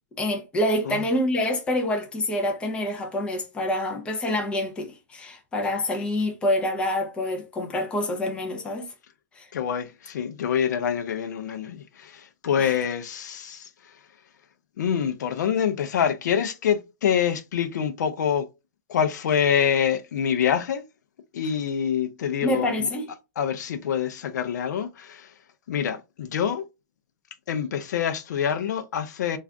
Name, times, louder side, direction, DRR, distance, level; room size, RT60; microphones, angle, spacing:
voice 1, 0.2-8.9 9.3-9.5 12.6-12.7 22.4-23.1, left 1 dB, 10° left, 0.6 m, -27 dB
voice 2, 9.5-13.7 14.8-18.5 18.9-20.8 21.3-22.9 23.4-25.3 25.7-26.6 27.5-29.4, left 8 dB, 70° left, 0.4 m, -26 dB
2.4 x 2.4 x 3.3 m
hypercardioid pair, 150°, 10 cm